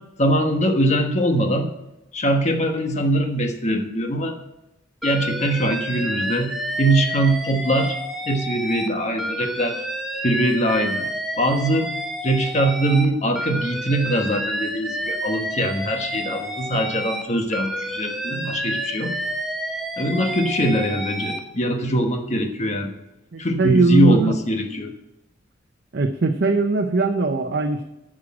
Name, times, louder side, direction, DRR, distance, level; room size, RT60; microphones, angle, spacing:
voice 1, 0.2-1.7 2.1-4.4 5.0-6.5 6.8-8.0 8.2-9.8 10.2-11.1 11.4-11.9 12.2-19.2 20.0-22.9 23.4-24.9, right 1 dB, 35° left, 5 dB, 1.2 m, -22 dB
Alarm, 5.0-8.9 9.2-13.1 13.3-17.2 17.5-21.4, right 1 dB, ahead, 1.0 m, -29 dB
voice 2, 23.3-24.3 25.9-27.8, right 3 dB, 55° right, 4 dB, 0.7 m, -20 dB
10.0 x 6.3 x 6.2 m, 0.96 s
head